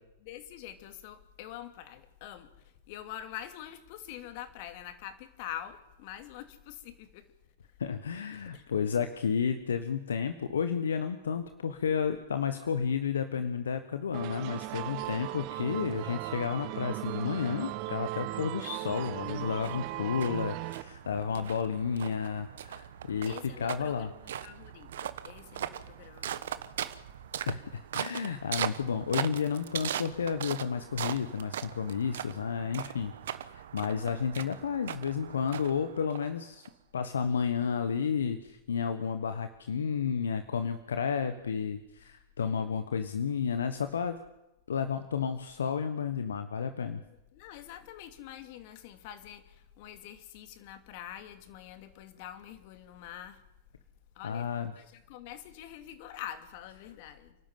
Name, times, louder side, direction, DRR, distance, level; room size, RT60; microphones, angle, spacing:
voice 1, 0.2-7.3 8.3-8.7 21.0-21.5 23.2-26.7 42.5-42.8 47.1-53.4 54.1-57.4, left 11 dB, 55° left, 9 dB, 2.7 m, -46 dB
voice 2, 7.8-24.1 27.5-33.1 33.5-36.7 36.9-44.2 44.7-47.0 54.2-54.7, left 6 dB, 80° left, 9 dB, 1.2 m, -32 dB
sound 1, 14.1-20.8, right 19 dB, 50° right, 1.0 m, -37 dB
sound 2, 19.0-36.7, right 10 dB, 70° right, 1.1 m, -40 dB
29.0 x 12.5 x 9.3 m, 0.94 s
hypercardioid pair, 100°, 0 cm